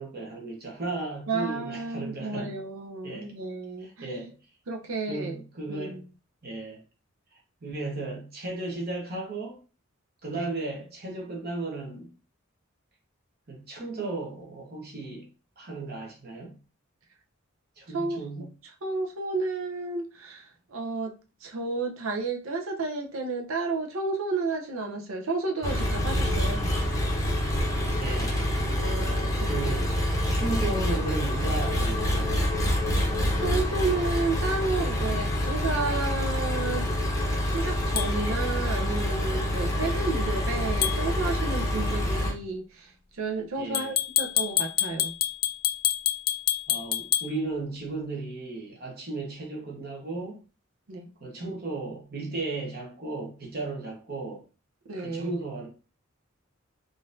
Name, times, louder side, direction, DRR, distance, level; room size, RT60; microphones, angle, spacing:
voice 1, 0.0-2.6 3.0-3.3 3.8-4.3 5.1-6.1 6.4-6.8 7.6-9.6 10.2-12.1 13.5-15.3 15.6-16.6 17.8-18.5 28.0-28.4 29.5-30.0 30.3-32.3 39.7-40.0 43.6-43.9 46.7-50.4 51.2-54.4 55.0-55.7, right 2 dB, 50° right, 1.0 m, -35 dB
voice 2, 1.3-4.3 4.7-5.3 5.7-6.0 10.4-10.5 17.9-18.5 18.8-21.1 21.4-26.6 28.8-29.6 32.7-32.9 33.4-36.9 37.4-45.2 50.9-51.1 54.9-55.3, right 3 dB, 85° right, 0.6 m, -32 dB
Engine, 25.6-42.3, left 1 dB, 15° left, 0.6 m, -27 dB
sound 1, 38.0-38.1 40.8-41.0 43.7-47.3, left 12 dB, 45° left, 0.3 m, -27 dB
3.8 x 2.6 x 2.5 m
head